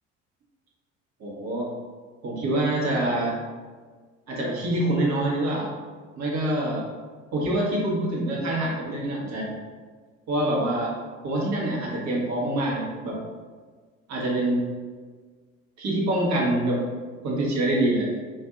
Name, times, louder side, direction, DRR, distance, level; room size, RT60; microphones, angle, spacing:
voice 1, 1.2-1.7 2.2-3.4 4.3-5.7 6.2-6.8 7.3-9.5 10.3-10.9 11.2-13.2 14.1-14.7 15.8-16.8 17.2-18.1, right 1 dB, 45° right, -3 dB, 1.2 m, -25 dB
5.3 x 2.6 x 2.5 m, 1.5 s
figure-of-eight pair, 55°, 39 cm